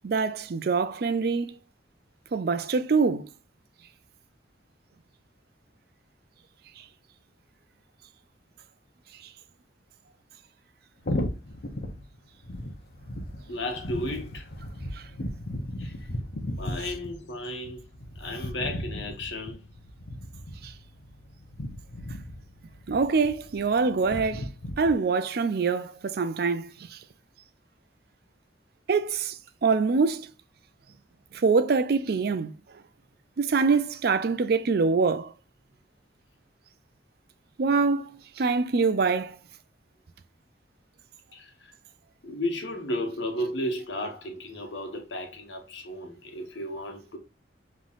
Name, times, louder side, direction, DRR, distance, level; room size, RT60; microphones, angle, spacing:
voice 1, 0.0-1.6 2.3-3.3 14.9-15.0 20.6-20.7 22.9-24.5 24.8-27.0 28.9-30.3 31.3-32.5 33.4-35.3 37.6-38.1 38.4-39.4, right 4 dB, 55° right, 0.4 m, -25 dB
sound 1, 11.0-24.9, left 1 dB, 55° left, 0.8 m, -36 dB
voice 2, 13.5-14.4 15.8-15.9 16.6-17.8 18.2-19.6 41.3-41.5 42.2-47.2, left 1 dB, 75° left, 1.2 m, -33 dB
5.6 x 3.1 x 2.4 m
head